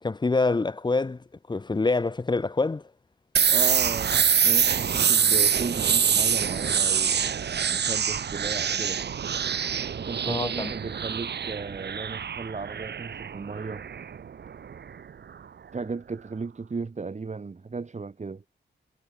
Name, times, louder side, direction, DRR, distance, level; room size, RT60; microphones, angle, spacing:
voice 1, 0.0-2.9 10.2-10.7, left 3 dB, 25° left, 0.9 m, -26 dB
sound 1, 3.4-15.0, right 7 dB, 60° right, 1.0 m, -25 dB
voice 2, 3.5-7.2 7.7-9.0 10.0-13.9 15.7-18.4, right 4 dB, 35° right, 3.4 m, -35 dB
wide cardioid pair, 135°, 20 cm